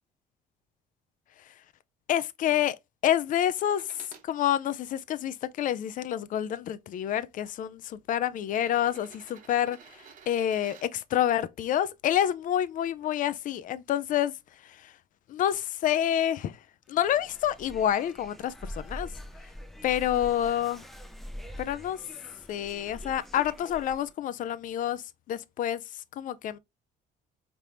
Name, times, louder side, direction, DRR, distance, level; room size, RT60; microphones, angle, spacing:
voice 1, 2.1-2.8 3.0-14.3 14.6-14.9 15.3-16.6 16.9-19.1 19.8-20.8 21.6-22.0 22.5-26.6, left 11 dB, 50° left, 0.4 m, -28 dB
sound 1, 3.7-4.3 5.0-6.0 7.0-7.1 8.4-10.9 12.7-12.8, right 7 dB, 50° right, 0.9 m, -52 dB
sound 2, 16.9-24.1, equal, ahead, 0.5 m, -44 dB
4.3 x 3.3 x 2.6 m
cardioid pair, 110°, 17 cm